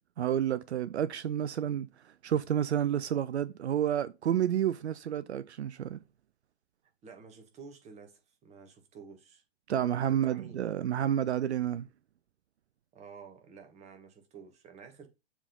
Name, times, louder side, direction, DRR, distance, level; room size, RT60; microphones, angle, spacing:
voice 1, 0.2-6.0 9.7-11.9, right 10 dB, 75° right, 0.6 m, -30 dB
voice 2, 7.0-9.4 10.1-10.7 12.9-15.1, right 5 dB, 20° right, 1.7 m, -51 dB
7.2 x 3.8 x 5.3 m
hypercardioid pair, 125°, 33 cm